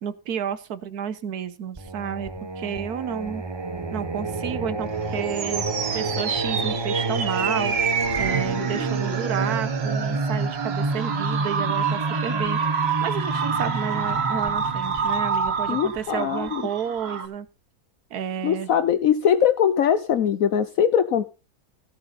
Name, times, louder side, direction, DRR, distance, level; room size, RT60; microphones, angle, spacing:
voice 1, 0.0-3.4 3.9-5.7 5.9-17.5 18.1-18.7, right 8 dB, 80° right, 14 dB, 1.5 m, -31 dB
Singing, 1.8-16.5, right 3 dB, 20° right, 0.9 m, -29 dB
sound 1, 4.9-17.3, right 6 dB, 45° right, 1.2 m, -28 dB
voice 2, 15.7-16.6 18.4-21.3, left 8 dB, 65° left, 12 dB, 1.1 m, -21 dB
16.5 x 7.2 x 4.1 m, 0.31 s
omnidirectional pair, 1.6 m